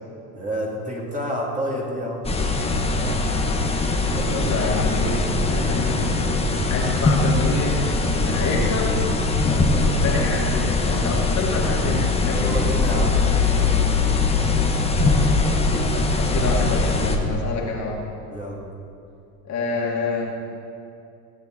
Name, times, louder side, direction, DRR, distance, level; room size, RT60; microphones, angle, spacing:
voice 1, 0.3-2.2 3.0-3.2 4.0-4.6 10.0-10.3 12.3-13.6 18.3-18.6, equal, 15° right, -2 dB, 2.6 m, -29 dB
sound 1, 2.2-17.2, left 3 dB, 10° left, 1.2 m, -21 dB
voice 2, 4.2-5.2 5.5-6.3 6.7-9.0 9.8-12.6 15.9-18.0 19.5-20.4, left 3 dB, 35° left, -2 dB, 2.7 m, -27 dB
17.5 x 8.2 x 7.9 m, 2.5 s
supercardioid pair, 125°, 49 cm